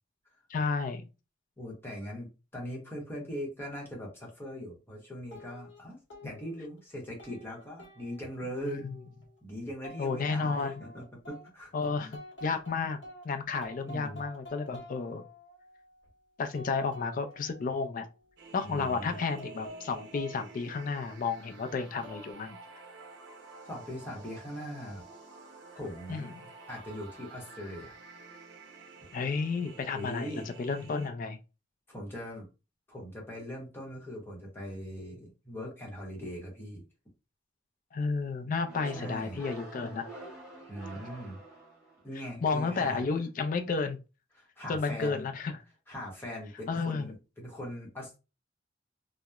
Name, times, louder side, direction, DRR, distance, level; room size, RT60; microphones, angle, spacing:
voice 1, 0.5-1.0 8.6-9.0 10.0-10.8 11.7-13.0 13.2-15.2 16.4-18.1 18.5-22.6 26.1-26.3 29.1-31.4 37.9-40.1 42.4-44.0 44.7-45.5 46.7-47.1, left 4 dB, 45° left, 0.4 m, -32 dB
voice 2, 1.6-6.0 6.2-8.8 9.4-11.7 12.0-12.1 13.8-14.2 18.6-19.2 23.7-25.1 25.7-26.4 26.7-28.0 29.9-30.5 31.9-32.5 32.9-36.8 38.9-39.4 40.6-41.4 42.0-43.0 44.3-45.3 45.9-48.2, equal, 10° left, 0.9 m, -41 dB
sound 1, 5.3-5.8 6.1-6.8 7.2-9.4 9.8-11.5 11.8-13.2 13.6-16.1 16.5-18.2 18.8-21.0 21.7-22.3, left 1 dB, 80° left, 0.9 m, -49 dB
sound 2, 18.4-31.1, right 3 dB, 65° right, 0.6 m, -51 dB
sound 3, 38.7-42.2, right 2 dB, 5° right, 1.2 m, -46 dB
2.8 x 2.0 x 2.3 m
head